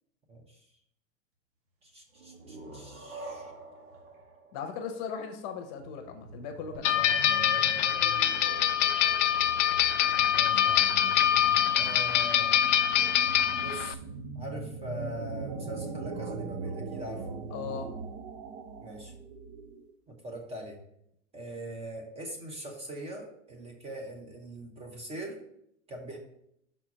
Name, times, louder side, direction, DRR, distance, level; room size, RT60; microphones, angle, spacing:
voice 1, 0.3-0.7 1.8-3.5 10.3-11.0 11.7-12.6 13.5-17.3 18.8-19.1 20.1-20.8 21.3-25.4 25.9-26.2, right 1 dB, 15° right, 2 dB, 0.9 m, -42 dB
sound 1, 2.1-5.7, right 2 dB, 75° right, 1.9 m, -46 dB
voice 2, 4.5-7.1 17.5-17.9, left 6 dB, 35° left, 6 dB, 0.9 m, -38 dB
sound 2, 5.8-19.9, right 4 dB, 35° right, 0.6 m, -41 dB
sound 3, 6.8-13.9, left 10 dB, 65° left, 0.6 m, -25 dB
6.0 x 4.4 x 6.0 m, 0.76 s
supercardioid pair, 150°, 39 cm